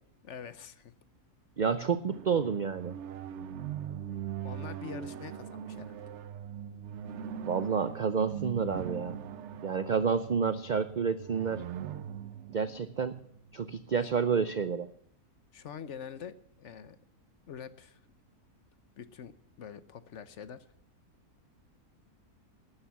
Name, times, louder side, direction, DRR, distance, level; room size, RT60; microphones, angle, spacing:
voice 1, 0.2-0.9 4.4-6.0 15.5-17.0 17.5-18.0 19.0-20.6, left 7 dB, 55° left, 14 dB, 1.0 m, -45 dB
voice 2, 1.6-3.0 7.4-9.2 9.6-11.7 12.5-13.2 13.5-14.9, right 6 dB, 85° right, 13 dB, 0.4 m, -29 dB
sound 1, 2.1-13.7, right 9 dB, 60° right, 0.8 m, -41 dB
12.5 x 9.8 x 7.0 m, 0.69 s
omnidirectional pair, 1.6 m